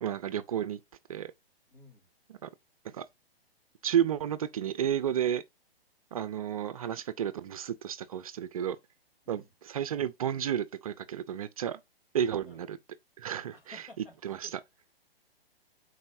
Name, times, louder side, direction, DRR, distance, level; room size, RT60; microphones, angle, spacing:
voice 1, 0.0-0.8 1.1-1.3 2.3-2.5 2.8-3.1 3.8-5.4 6.1-8.8 9.3-11.8 12.1-12.8 13.2-13.8 14.2-14.6, right 9 dB, 35° right, 0.5 m, -32 dB
voice 2, 1.7-2.1 9.2-9.5 12.4-12.6 13.5-14.2 14.4-14.5, left 3 dB, 65° left, 3.1 m, -53 dB
9.4 x 4.2 x 2.6 m
figure-of-eight pair, 125°, 31 cm